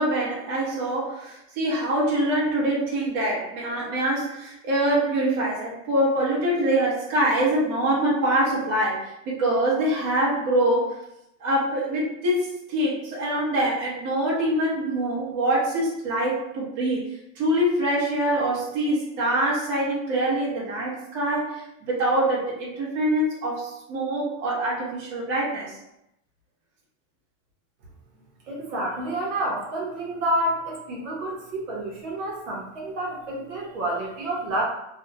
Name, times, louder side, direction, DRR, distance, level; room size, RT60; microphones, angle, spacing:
voice 1, 0.0-11.0 11.4-17.0 17.4-21.6 21.9-25.8, right 1 dB, 35° right, -6 dB, 0.9 m, -24 dB
voice 2, 28.5-34.6, right 1 dB, 70° right, -3 dB, 0.9 m, -29 dB
2.6 x 2.1 x 2.6 m, 0.83 s
supercardioid pair, 170°, 39 cm